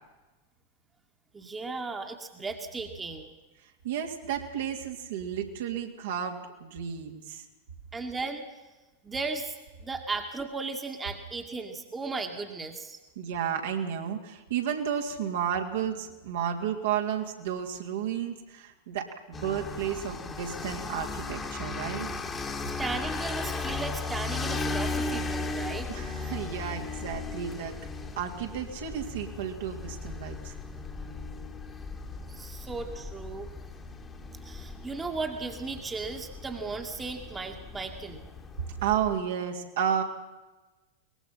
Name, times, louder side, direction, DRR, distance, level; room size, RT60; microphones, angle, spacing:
voice 1, 1.3-3.3 7.9-8.5 9.0-13.0 22.8-25.9 32.3-33.5 34.4-38.2, right 3 dB, 15° right, 4 dB, 2.1 m, -36 dB
voice 2, 3.8-7.4 13.2-22.1 25.9-27.8 28.2-30.5 38.8-40.0, right 9 dB, 60° right, 2 dB, 2.9 m, -32 dB
sound 1, 19.3-39.2, left 3 dB, 15° left, 2.1 m, -37 dB
23.5 x 20.5 x 5.8 m, 1.2 s
figure-of-eight pair, 90°, 0 cm